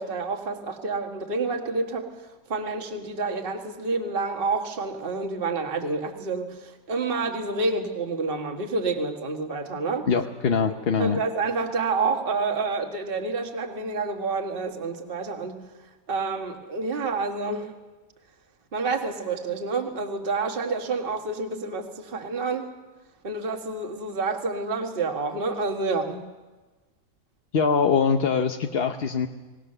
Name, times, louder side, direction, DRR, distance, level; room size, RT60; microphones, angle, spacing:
voice 1, 0.0-10.1 10.6-15.6 16.1-17.7 18.7-22.7 23.2-26.2, right 3 dB, 35° right, 4 dB, 1.7 m, -28 dB
voice 2, 10.1-11.2 27.5-29.3, left 5 dB, 45° left, 5 dB, 0.9 m, -23 dB
23.5 x 18.5 x 6.7 m, 1.2 s
omnidirectional pair, 1.8 m